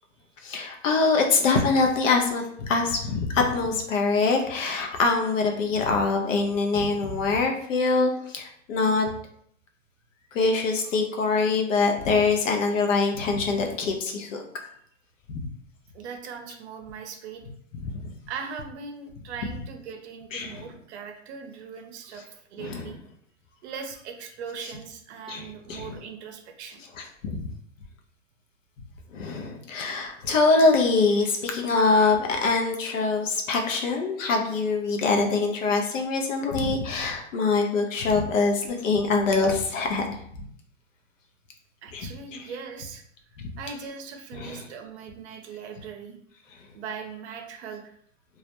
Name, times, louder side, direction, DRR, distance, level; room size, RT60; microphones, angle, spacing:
voice 1, 0.4-9.1 10.3-14.4 15.3-15.4 17.7-17.9 20.3-20.6 22.6-22.9 25.3-25.9 27.0-27.5 29.1-40.1 41.9-42.5 43.4-43.5 44.3-44.6, left 4 dB, 80° left, 3 dB, 0.7 m, -24 dB
voice 2, 15.9-17.4 18.3-22.2 22.5-23.0 23.6-26.8 41.8-43.0 43.6-46.2 46.7-47.8, right 6 dB, 60° right, 5 dB, 0.6 m, -39 dB
2.4 x 2.0 x 2.8 m, 0.67 s
hypercardioid pair, 125°, 38 cm